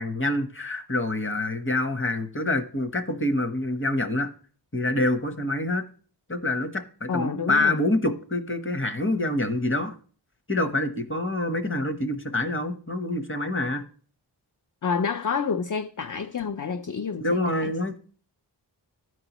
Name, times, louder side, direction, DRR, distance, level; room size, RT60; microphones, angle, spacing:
voice 1, 0.0-4.3 4.7-5.8 6.3-9.9 10.5-13.8 17.2-18.0, left 1 dB, 30° left, 1.1 m, -26 dB
voice 2, 7.1-7.8 14.8-17.7, left 5 dB, 45° left, 0.5 m, -29 dB
13.5 x 4.6 x 3.0 m
wide cardioid pair, 55°, 44 cm